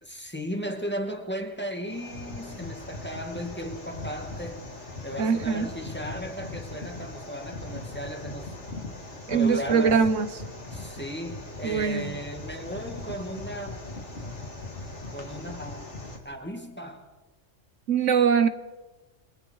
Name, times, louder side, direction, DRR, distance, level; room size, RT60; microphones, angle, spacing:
voice 1, 0.0-4.7 5.0-8.5 9.3-10.0 10.7-14.0 15.1-16.0 16.2-17.0, equal, 10° left, 3 dB, 2.4 m, -36 dB
sound 1, 1.9-16.2, left 2 dB, 65° left, 3.4 m, -40 dB
voice 2, 5.2-5.7 9.3-10.3 11.6-12.2 17.9-18.5, right 6 dB, 75° right, 12 dB, 1.3 m, -22 dB
28.5 x 23.0 x 4.8 m, 1.1 s
omnidirectional pair, 1.3 m